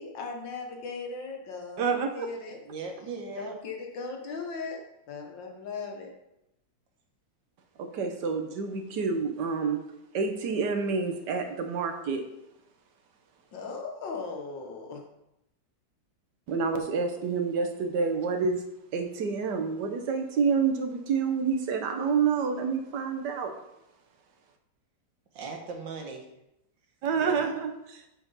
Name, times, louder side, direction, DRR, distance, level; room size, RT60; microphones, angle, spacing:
voice 1, 0.0-2.6 3.4-4.8 5.1-6.1 13.5-15.0, left 4 dB, 90° left, 2 dB, 2.0 m, -38 dB
voice 2, 1.8-2.1 7.8-9.8 10.1-12.2 16.5-18.6 18.9-23.5 27.0-28.0, right 5 dB, 70° right, 5 dB, 1.5 m, -28 dB
voice 3, 2.7-3.5 25.3-26.3 27.1-27.5, right 4 dB, 85° right, 2 dB, 1.9 m, -38 dB
7.9 x 4.5 x 5.4 m, 0.86 s
omnidirectional pair, 1.9 m